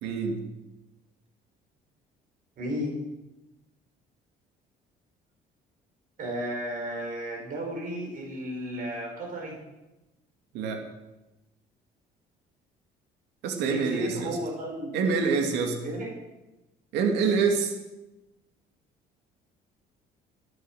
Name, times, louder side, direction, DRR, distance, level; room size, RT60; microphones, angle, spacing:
voice 1, 0.0-0.4 10.5-10.8 13.4-14.4 14.9-15.8 16.9-17.7, right 5 dB, 90° right, 3 dB, 2.5 m, -26 dB
voice 2, 2.6-2.9 6.2-9.6 13.6-14.9 15.8-16.1, equal, 55° right, 0 dB, 6.1 m, -33 dB
18.0 x 9.9 x 6.4 m, 1.0 s
cardioid pair, 110°, 17 cm